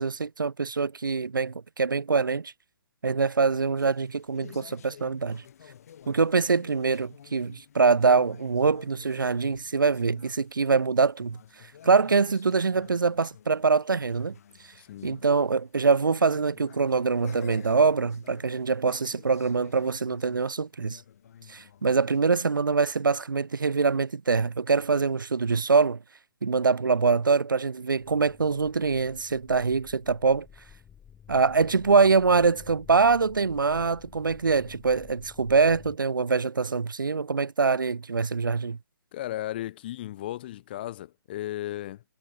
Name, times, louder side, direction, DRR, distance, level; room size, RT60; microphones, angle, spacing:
voice 1, 0.0-2.5 3.0-5.4 6.1-11.4 11.8-14.4 15.0-21.0 21.5-26.0 26.4-30.5 31.3-38.8, right 4 dB, 65° right, 0.8 m, -24 dB
sound 1, 3.8-22.2, left 9 dB, 45° left, 7.4 m, -52 dB
voice 2, 14.8-15.2 39.1-42.0, left 14 dB, 30° left, 0.5 m, -35 dB
sound 2, 28.0-36.0, left 8 dB, 10° left, 6.5 m, -51 dB
figure-of-eight pair, 130°, 11 cm